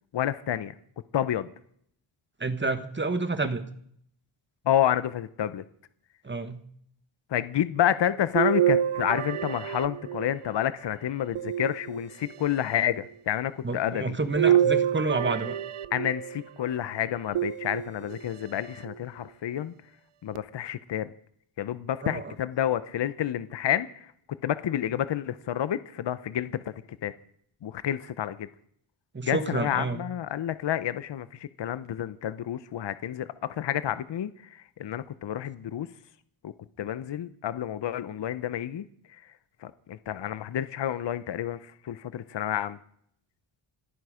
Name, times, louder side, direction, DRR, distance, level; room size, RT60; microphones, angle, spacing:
voice 1, 0.1-0.7 1.1-1.5 4.7-5.6 7.3-14.2 15.9-19.7 20.2-21.1 21.6-24.1 24.4-26.6 27.0-27.1 27.6-28.5 29.2-35.9 36.4-36.5 36.8-38.8 39.6-42.8, left 11 dB, 55° left, 14 dB, 0.8 m, -29 dB
voice 2, 2.4-3.6 6.2-6.6 13.6-15.6 22.0-22.3 29.1-30.0, right 3 dB, 20° right, 10 dB, 1.4 m, -29 dB
sound 1, 8.3-10.6 11.3-12.4 14.3-16.4 17.3-18.2 18.9-19.0 20.3-20.4, right 10 dB, 75° right, 0.8 m, -27 dB
27.5 x 9.3 x 5.0 m, 0.66 s
wide cardioid pair, 115°, 50 cm